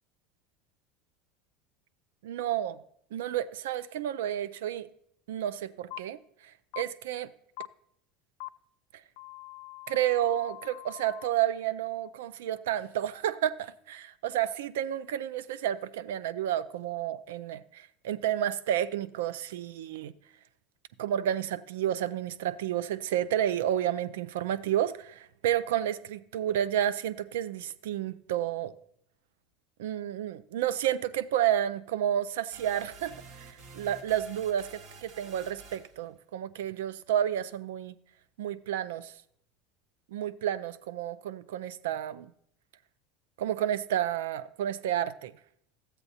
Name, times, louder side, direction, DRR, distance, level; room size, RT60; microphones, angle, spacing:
voice 1, 2.2-2.8 3.1-4.9 5.3-6.2 6.8-7.3 9.9-20.1 21.0-28.8 29.8-38.0 38.4-39.1 40.1-42.3 43.4-45.3, right 11 dB, 80° right, 0.4 m, -31 dB
sound 1, 5.9-6.0 6.7-6.8 7.6-7.7 8.4-8.5 9.2-11.3, left 25 dB, 70° left, 0.3 m, -43 dB
sound 2, 32.5-36.0, right 3 dB, 55° right, 1.2 m, -50 dB
13.5 x 7.9 x 2.8 m
hypercardioid pair, 95°, 0 cm